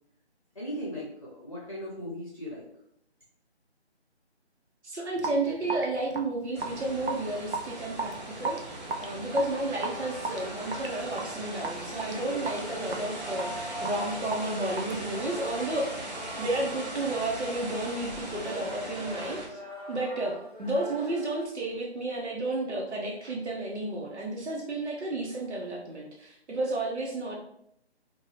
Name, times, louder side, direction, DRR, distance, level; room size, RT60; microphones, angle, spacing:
voice 1, 0.5-2.6, equal, 30° left, -6 dB, 0.7 m, -37 dB
voice 2, 4.8-15.9 16.4-19.4 19.9-27.4, right 2 dB, 80° right, -2 dB, 0.8 m, -32 dB
Raindrop / Drip, 5.2-15.7, right 3 dB, 55° right, 0.5 m, -37 dB
sound 1, 6.5-19.5, right 1 dB, 40° right, 0.9 m, -39 dB
sound 2, 9.0-21.4, left 1 dB, 10° right, 0.7 m, -43 dB
2.6 x 2.2 x 3.2 m, 0.73 s
figure-of-eight pair, 160°, 33 cm